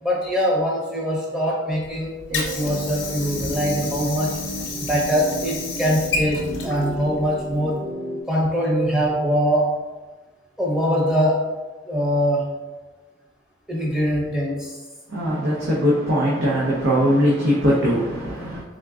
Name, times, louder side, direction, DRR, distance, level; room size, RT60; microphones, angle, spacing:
voice 1, 0.0-4.4 4.8-7.8 8.3-9.8 10.6-11.6 11.9-12.5 13.7-14.8, equal, 5° right, -4 dB, 0.6 m, -23 dB
Water / Sink (filling or washing), 1.8-7.8, left 3 dB, 80° left, 0.7 m, -31 dB
sound 1, 2.3-8.2, right 1 dB, 50° right, 0.4 m, -33 dB
voice 2, 15.1-18.6, equal, 85° right, -6 dB, 0.7 m, -20 dB
3.6 x 3.5 x 2.3 m, 1.2 s
head